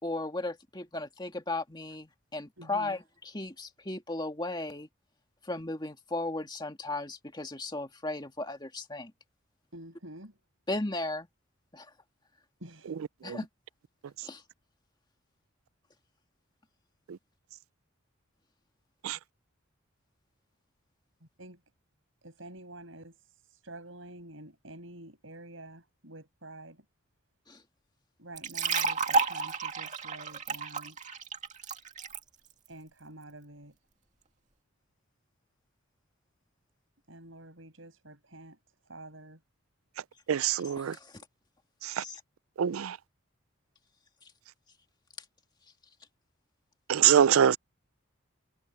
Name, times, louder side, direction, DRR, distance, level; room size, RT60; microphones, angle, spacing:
voice 1, 0.0-3.0 3.3-4.9 5.4-9.1 10.7-11.3 11.7-11.9 13.2-13.5 14.2-14.4 27.5-27.6 40.5-41.2 42.0-42.2, left 2 dB, 20° left, 2.2 m, -36 dB
voice 2, 2.6-3.0 9.7-10.4 12.6-13.0 21.2-21.6 22.2-26.9 28.2-31.0 32.7-33.8 37.1-38.6 38.9-39.4, right 1 dB, 70° right, 7.7 m, -48 dB
sound 1, 28.4-32.2, right 4 dB, 35° right, 2.3 m, -31 dB
voice 3, 40.3-41.0 41.8-42.0 42.6-43.0 46.9-47.6, right 9 dB, 85° right, 0.4 m, -24 dB
head